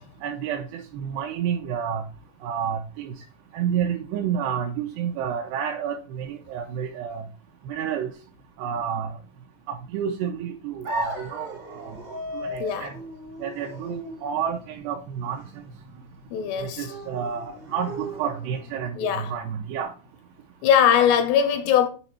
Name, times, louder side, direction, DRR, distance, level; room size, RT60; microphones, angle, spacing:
voice 1, 0.2-2.0 2.4-3.1 3.5-7.2 7.7-8.1 8.6-9.1 9.7-11.9 12.3-12.9 13.4-15.4 16.6-19.9, right 8 dB, 80° right, 2.5 m, -30 dB
sound 1, 10.8-18.8, equal, 65° right, 1.0 m, -37 dB
voice 2, 12.6-12.9 16.3-16.9 18.9-19.3 20.6-21.9, left 8 dB, 80° left, 2.7 m, -21 dB
7.9 x 3.1 x 4.4 m
omnidirectional pair, 5.1 m